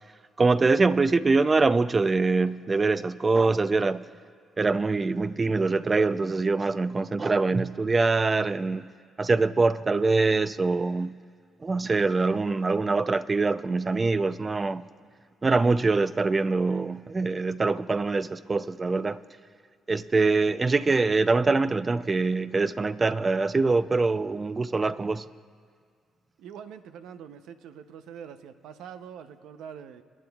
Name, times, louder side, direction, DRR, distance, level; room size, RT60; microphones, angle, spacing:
voice 1, 0.4-4.0 4.6-8.8 9.2-11.2 11.6-14.8 15.4-19.2 19.9-25.3, right 3 dB, 30° right, 0.4 m, -24 dB
voice 2, 26.4-30.0, right 8 dB, 85° right, 0.6 m, -44 dB
29.5 x 9.9 x 2.3 m
cardioid pair, 90°, 0 cm